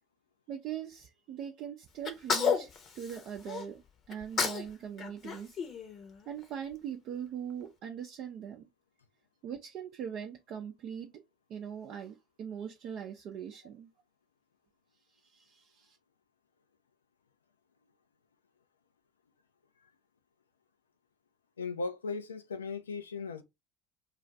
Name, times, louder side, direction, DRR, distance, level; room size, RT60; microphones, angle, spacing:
voice 1, 0.5-3.8 4.1-5.6 6.3-8.7 9.4-11.2 11.5-13.9 15.1-16.0, right 8 dB, 50° right, 0.5 m, -41 dB
Sneeze, 2.0-3.6 4.1-4.7 5.0-6.4, left 6 dB, 40° left, 0.7 m, -32 dB
voice 2, 21.6-23.4, left 4 dB, 85° left, 0.4 m, -37 dB
2.4 x 2.4 x 4.0 m
figure-of-eight pair, 65°, 0 cm